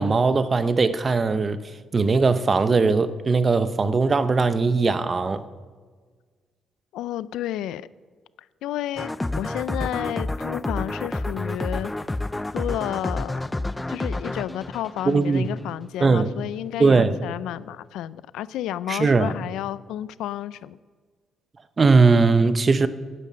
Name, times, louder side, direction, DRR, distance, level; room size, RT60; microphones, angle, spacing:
voice 1, 0.0-1.6 1.9-5.4 15.1-15.5 16.0-16.3 16.8-17.2 18.9-19.3 21.8-22.9, right 4 dB, 35° right, 0.7 m, -19 dB
voice 2, 6.9-7.9 8.6-11.9 12.5-13.4 13.9-20.8, left 12 dB, 90° left, 0.3 m, -31 dB
sound 1, 9.0-15.7, left 2 dB, 15° left, 0.4 m, -29 dB
11.0 x 9.8 x 6.3 m
cardioid pair, 90°, 0 cm